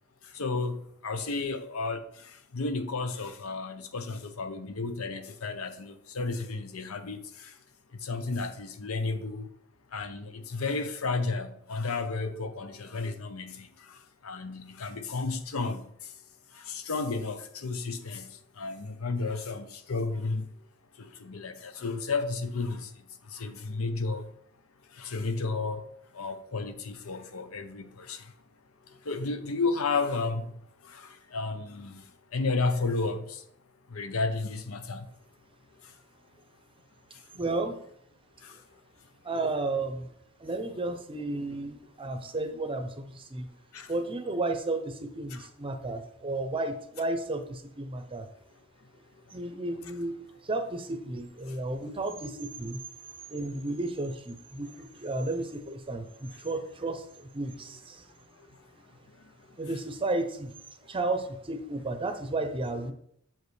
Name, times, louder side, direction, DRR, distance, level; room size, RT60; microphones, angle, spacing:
voice 1, 0.3-7.5 8.0-9.5 9.9-14.0 14.2-15.9 16.5-20.5 21.0-22.9 23.3-24.3 25.0-25.8 26.1-28.3 29.1-30.5 30.8-32.0 32.3-33.4 33.9-35.1 38.4-38.6 43.7-43.9 45.3-45.5, left 3 dB, 90° left, 0.8 m, -32 dB
voice 2, 37.3-37.8 39.2-40.1 40.4-43.5 43.9-48.3 49.3-50.1 50.4-52.8 53.3-58.0 59.6-60.5 60.9-62.9, right 2 dB, 25° right, 0.6 m, -33 dB
7.3 x 5.2 x 3.2 m
head